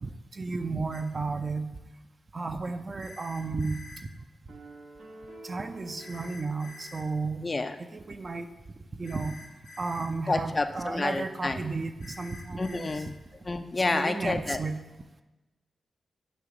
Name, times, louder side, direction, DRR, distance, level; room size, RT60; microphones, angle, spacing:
voice 1, 0.0-1.8 2.3-3.8 5.4-7.5 7.8-8.5 9.0-9.4 9.8-13.0 13.8-14.8, right 3 dB, 45° right, 8 dB, 0.5 m, -33 dB
sound 1, 0.9-1.0 3.0-4.0 6.0-7.0 9.0-10.1 12.0-13.0, left 2 dB, 85° left, 0.9 m, -47 dB
sound 2, 4.5-7.7, right 2 dB, 90° right, 1.0 m, -49 dB
voice 2, 7.4-7.7 10.3-11.6 12.6-13.1 13.4-14.6, left 3 dB, 40° left, 8 dB, 0.4 m, -29 dB
8.1 x 2.8 x 4.8 m, 1.1 s
supercardioid pair, 45°, 0 cm